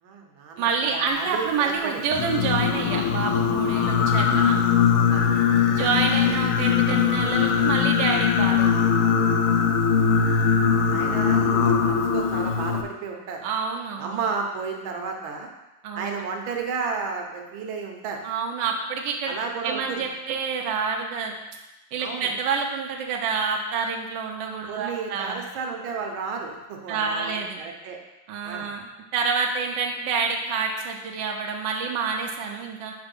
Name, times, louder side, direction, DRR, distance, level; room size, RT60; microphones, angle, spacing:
voice 1, 0.0-2.0 5.1-5.3 5.7-5.9 9.9-10.2 10.6-13.4 14.0-15.5 15.9-18.2 19.3-20.0 20.3-20.4 22.0-22.3 24.7-28.0 28.4-28.7, right 5 dB, 90° right, 2 dB, 1.6 m, -33 dB
voice 2, 0.6-4.6 5.8-8.7 13.4-14.2 15.8-16.2 18.2-19.3 19.6-21.4 21.9-25.4 26.9-27.6 28.3-28.8 29.1-32.9, right 5 dB, 75° right, 1 dB, 1.3 m, -27 dB
Singing, 2.1-12.8, left 6 dB, 85° left, 1.4 m, -21 dB
4.8 x 4.6 x 5.2 m, 1.0 s
omnidirectional pair, 2.1 m